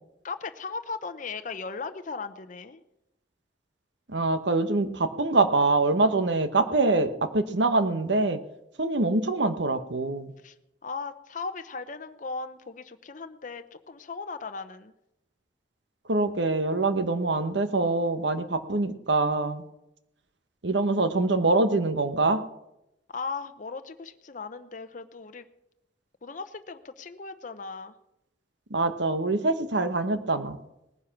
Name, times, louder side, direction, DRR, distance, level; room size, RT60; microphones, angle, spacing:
voice 1, 0.2-2.8 10.4-10.5 10.8-14.9 23.1-25.4 26.2-27.9, left 4 dB, 45° left, 8 dB, 0.8 m, -37 dB
voice 2, 4.1-8.4 8.8-10.3 16.1-19.6 20.6-22.4 28.7-30.6, right 3 dB, 90° right, 10 dB, 1.1 m, -24 dB
18.5 x 10.0 x 5.9 m, 0.89 s
head